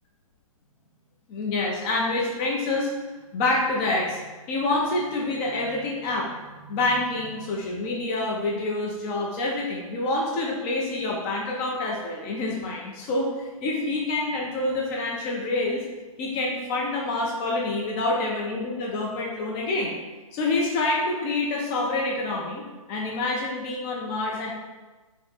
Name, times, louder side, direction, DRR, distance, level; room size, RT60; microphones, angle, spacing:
voice 1, 1.3-2.9 3.3-4.2 4.5-15.8 16.2-20.0 20.3-22.6 22.9-24.5, left 2 dB, 15° left, -2 dB, 0.4 m, -27 dB
3.5 x 3.3 x 3.9 m, 1.2 s
figure-of-eight pair, 130°, 18 cm